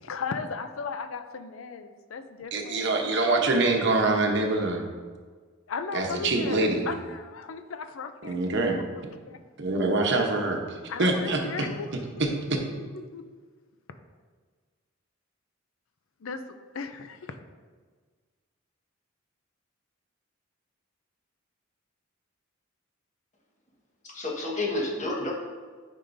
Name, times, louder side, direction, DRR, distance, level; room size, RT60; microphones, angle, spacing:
voice 1, 0.0-3.0 5.7-8.4 8.6-8.7 9.3-9.4 10.9-12.1 13.1-13.2 16.2-16.4 16.7-17.4, left 5 dB, 80° left, 9 dB, 0.5 m, -36 dB
voice 2, 2.5-4.8 5.9-6.9 8.2-8.8 9.6-10.6 11.0-11.7 12.5-12.6, right 2 dB, 60° right, 2 dB, 0.9 m, -25 dB
voice 3, 24.0-25.3, left 2 dB, 35° left, -3 dB, 1.4 m, -30 dB
9.9 x 5.5 x 2.6 m, 1.5 s
head